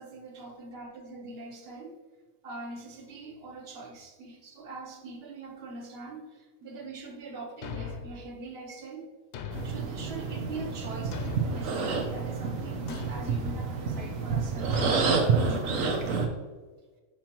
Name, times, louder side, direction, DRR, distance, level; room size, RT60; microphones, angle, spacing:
voice 1, 0.0-2.0 2.4-9.1 9.6-15.8 16.2-16.4, right 3 dB, 50° right, 3 dB, 1.2 m, -42 dB
Thump thud, 7.6-8.2 9.3-9.9 11.1-11.7 12.9-13.3 14.7-15.1, left 6 dB, 65° left, 0.9 m, -38 dB
sound 1, 9.5-16.3, right 5 dB, 85° right, 1.3 m, -29 dB
9.0 x 5.7 x 3.0 m, 1.3 s
omnidirectional pair, 1.4 m